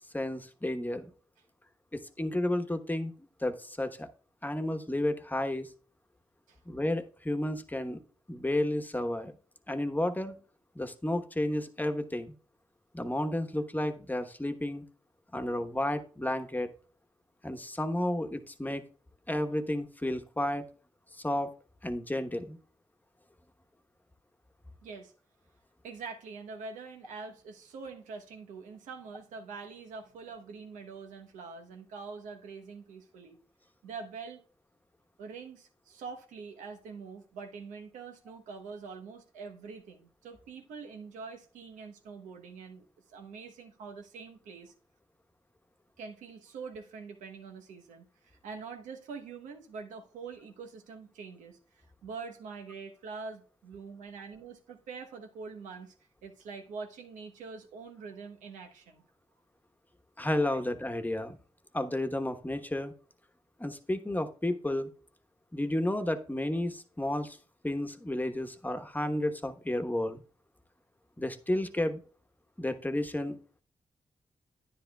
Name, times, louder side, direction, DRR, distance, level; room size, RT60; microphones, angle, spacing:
voice 1, 0.1-1.1 1.9-3.1 3.4-4.1 4.4-5.7 6.7-8.0 8.3-9.3 9.7-10.4 10.7-12.3 12.9-14.8 15.3-16.7 17.4-18.8 19.3-20.6 21.2-21.5 21.8-22.6 60.2-61.4 61.7-62.9 63.6-64.9 65.5-67.4 67.6-70.2 71.2-72.0 72.6-73.6, left 1 dB, 15° left, 1.1 m, -32 dB
voice 2, 24.8-25.1 25.8-33.4 33.8-34.4 35.2-44.7 46.0-55.9 56.2-59.0 60.5-60.6, right 5 dB, 85° right, 1.0 m, -45 dB
10.0 x 9.9 x 2.3 m
supercardioid pair, 40°, 13 cm